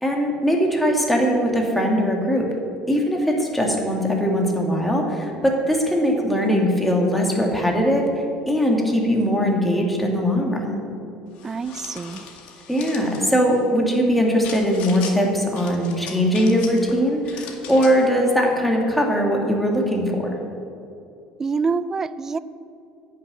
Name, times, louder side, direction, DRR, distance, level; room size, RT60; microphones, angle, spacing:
voice 1, 0.0-2.5 2.9-8.1 8.5-10.8 12.7-20.3, equal, 5° left, 0 dB, 2.1 m, -20 dB
sound 1, 11.4-13.2 14.4-15.2 15.6-16.9 17.2-18.1, left 6 dB, 65° left, 1.9 m, -38 dB
voice 2, 11.4-12.2 21.4-22.4, right 4 dB, 20° right, 15 dB, 0.4 m, -26 dB
11.0 x 6.7 x 9.2 m, 2.7 s
cardioid pair, 135°, 2 cm